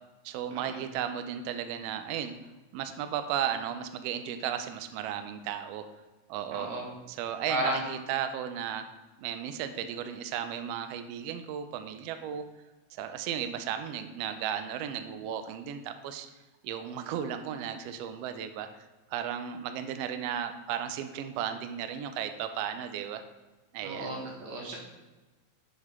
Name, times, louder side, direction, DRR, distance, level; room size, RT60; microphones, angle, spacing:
voice 1, 0.2-2.3 2.7-5.9 6.3-6.7 7.1-8.8 9.2-12.4 12.9-16.3 16.6-18.8 19.1-23.2 23.7-24.1, right 9 dB, 90° right, 9 dB, 1.4 m, -35 dB
voice 2, 6.5-6.9 7.5-7.8 23.8-24.8, right 1 dB, 75° right, -1 dB, 2.6 m, -33 dB
6.3 x 5.6 x 3.6 m, 1.1 s
omnidirectional pair, 3.4 m